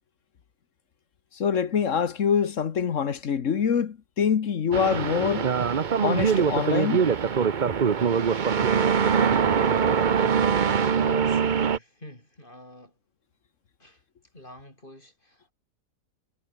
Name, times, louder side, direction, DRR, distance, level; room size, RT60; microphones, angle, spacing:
voice 1, 1.3-5.5 6.0-7.1, left 7 dB, 50° left, 1.4 m, -25 dB
sound 1, 4.7-11.8, right 6 dB, 40° right, 0.7 m, -23 dB
voice 2, 10.8-12.9 13.8-14.0 14.3-15.5, left 1 dB, 30° left, 6.7 m, -47 dB
omnidirectional pair, 1.8 m